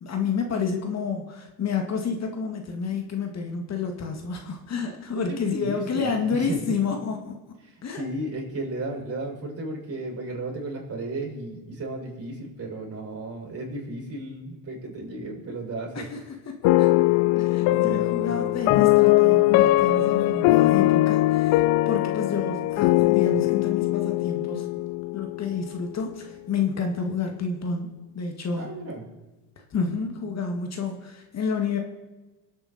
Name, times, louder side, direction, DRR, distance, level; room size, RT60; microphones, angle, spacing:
voice 1, 0.0-7.4 7.8-8.0 15.9-16.9 17.4-24.7 25.1-28.7 29.7-31.8, left 5 dB, 45° left, 4 dB, 2.2 m, -29 dB
voice 2, 5.1-6.8 7.9-16.0 17.6-18.6 28.5-29.1, right 2 dB, 40° right, -1 dB, 6.3 m, -34 dB
sound 1, 16.6-25.8, left 18 dB, 70° left, 0.6 m, -21 dB
24.0 x 8.7 x 4.3 m, 1.1 s
supercardioid pair, 95°, 38 cm